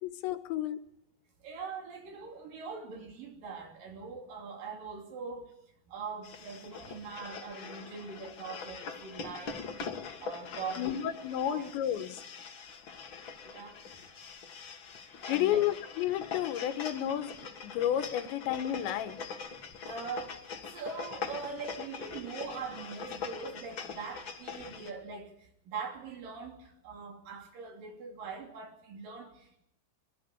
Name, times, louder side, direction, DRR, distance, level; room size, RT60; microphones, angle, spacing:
voice 1, 0.0-0.8 10.8-12.2 15.3-19.2, left 11 dB, 90° left, 12 dB, 3.4 m, -31 dB
voice 2, 1.4-5.5 5.9-9.6 10.2-11.7 13.4-13.8 15.2-15.7 19.9-29.6, right 5 dB, 55° right, 4 dB, 4.3 m, -42 dB
sound 1, 6.2-24.9, left 5 dB, 70° left, 1.1 m, -43 dB
24.0 x 12.5 x 8.6 m, 0.75 s
omnidirectional pair, 5.1 m